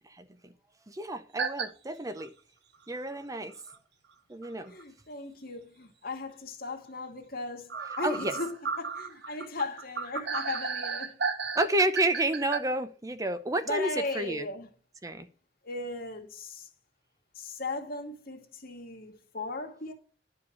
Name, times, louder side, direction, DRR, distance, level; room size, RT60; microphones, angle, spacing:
voice 1, 0.9-2.3 2.9-3.5 4.3-4.7 8.0-8.3 11.6-14.5 15.0-15.3, right 1 dB, 20° right, 0.6 m, -30 dB
sound 1, 1.4-1.7 2.2-2.3 3.7-3.8 4.4-4.5 4.8-4.9 7.7-12.6, right 5 dB, 65° right, 1.0 m, -34 dB
voice 2, 4.7-11.2 13.7-14.7 15.6-16.7 17.4-19.9, left 2 dB, 55° left, 2.2 m, -37 dB
11.5 x 5.1 x 7.1 m
head